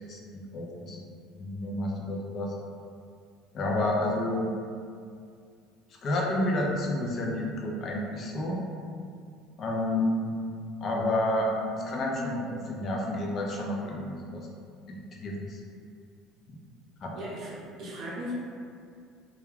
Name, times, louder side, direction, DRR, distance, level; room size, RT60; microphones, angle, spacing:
voice 1, 0.5-1.0 1.3-2.5 3.5-4.5 6.0-8.6 9.6-10.5 10.8-14.5 14.9-15.6 16.5-16.6 17.0-17.1, left 1 dB, 30° left, -2 dB, 0.4 m, -30 dB
voice 2, 17.1-18.3, equal, 45° right, -6 dB, 0.7 m, -38 dB
2.3 x 2.2 x 3.1 m, 2.3 s
cardioid pair, 160°, 0 cm